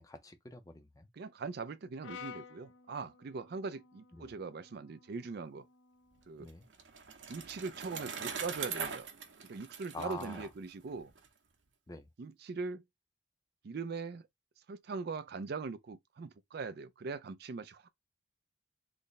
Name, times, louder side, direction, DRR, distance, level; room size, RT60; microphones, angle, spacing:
voice 1, 0.0-1.1 4.1-4.3 6.4-6.7 9.9-10.5 11.9-12.1, left 2 dB, 20° left, 0.6 m, -46 dB
voice 2, 1.1-5.7 6.3-6.5 7.3-9.1 9.5-11.1 12.2-12.8 13.6-14.3 14.7-17.9, right 4 dB, 60° right, 0.4 m, -41 dB
Brass instrument, 2.0-6.3, left 7 dB, 90° left, 0.5 m, -53 dB
Bicycle, 6.2-11.3, right 6 dB, 75° right, 0.8 m, -42 dB
3.3 x 2.1 x 3.9 m
head